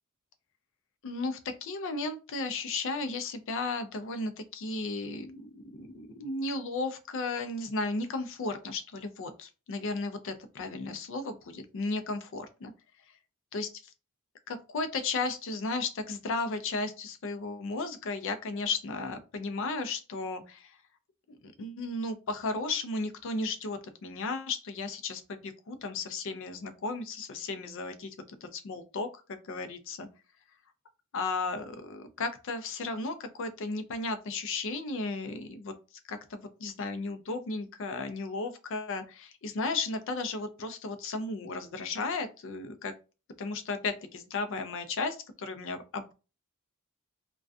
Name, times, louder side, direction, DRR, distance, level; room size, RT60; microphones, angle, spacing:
voice 1, 1.0-12.7 13.5-13.7 14.5-20.8 21.3-29.1 29.4-30.1 31.1-35.7 36.1-42.9 43.4-46.1, left 3 dB, 65° left, 9 dB, 0.4 m, -34 dB
2.5 x 2.2 x 2.3 m, 0.31 s
head